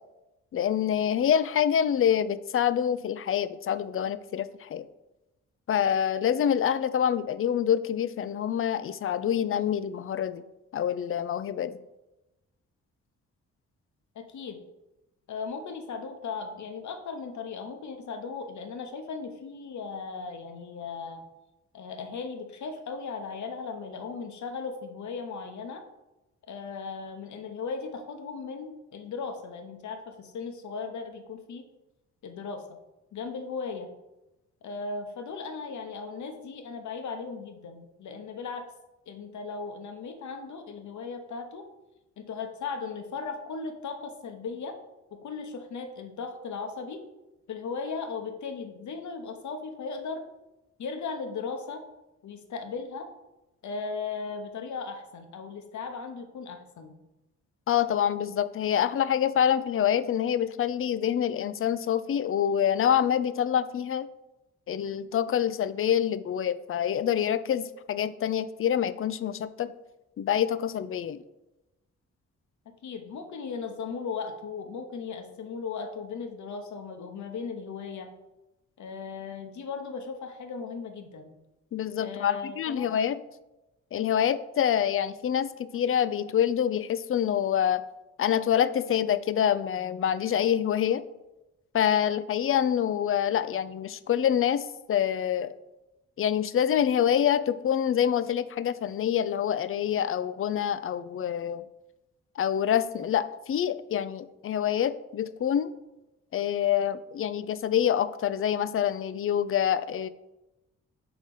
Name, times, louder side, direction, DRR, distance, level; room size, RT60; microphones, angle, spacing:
voice 1, 0.5-4.9 5.7-10.4 10.7-11.8 57.7-64.1 64.7-69.7 70.2-71.2 81.7-83.2 83.9-87.8 88.2-91.0 91.7-95.5 96.2-101.6 102.4-105.7 106.3-110.1, left 9 dB, 45° left, 14 dB, 0.4 m, -26 dB
voice 2, 14.1-14.6 15.3-21.2 21.7-25.8 26.5-31.6 32.2-32.6 33.1-33.9 34.6-38.7 39.1-41.6 42.2-44.8 45.1-47.0 47.5-50.2 50.8-51.8 52.2-53.1 53.6-56.9 72.8-78.1 78.8-81.3 82.0-82.9, left 5 dB, 65° left, 6 dB, 0.9 m, -37 dB
5.0 x 3.9 x 5.3 m, 0.98 s
cardioid pair, 60°, 31 cm